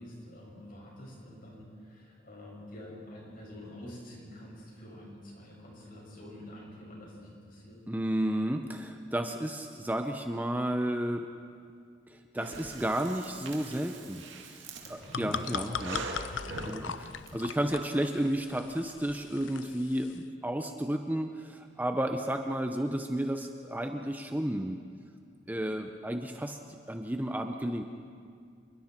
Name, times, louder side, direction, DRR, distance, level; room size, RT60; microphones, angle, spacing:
voice 1, 0.0-7.8 14.8-15.2 16.7-17.0, left 1 dB, 50° left, -3 dB, 6.7 m, -47 dB
voice 2, 7.9-11.2 12.1-16.1 16.6-24.8 25.5-26.6 26.9-27.8, right 1 dB, 10° right, 5 dB, 0.7 m, -32 dB
Breathing, 12.4-17.3, right 3 dB, 80° right, 2.2 m, -42 dB
sound 1, 14.8-20.2, left 6 dB, 85° left, 0.6 m, -40 dB
27.5 x 22.0 x 4.5 m, 2.2 s
head